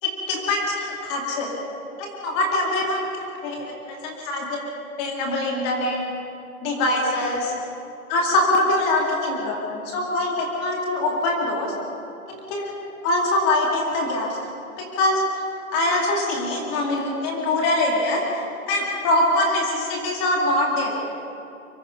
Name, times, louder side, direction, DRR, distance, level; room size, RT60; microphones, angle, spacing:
voice 1, 0.0-1.5 2.0-4.6 5.0-6.1 6.6-7.5 8.1-11.7 12.3-12.7 13.0-14.5 14.8-15.2 15.7-21.0, left 1 dB, 15° left, -1 dB, 2.4 m, -23 dB
24.0 x 22.5 x 5.4 m, 2.6 s
hypercardioid pair, 160°, 44 cm